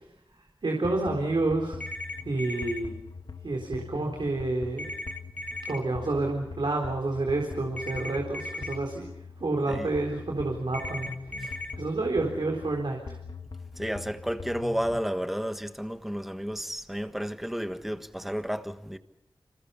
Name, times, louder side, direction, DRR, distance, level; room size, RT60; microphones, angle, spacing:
voice 1, 0.6-1.8 2.2-2.9 3.4-4.9 5.7-9.1 9.4-11.1 11.4-13.2, right 2 dB, 75° right, 4.0 m, -29 dB
sound 1, 0.8-15.1, left 4 dB, 70° left, 1.6 m, -42 dB
sound 2, 1.8-2.8 4.8-5.8 7.8-8.8 10.7-11.7, left 2 dB, 20° left, 1.9 m, -37 dB
voice 2, 13.8-19.0, equal, 5° right, 1.4 m, -32 dB
29.0 x 27.0 x 5.7 m
wide cardioid pair, 85°, 8 cm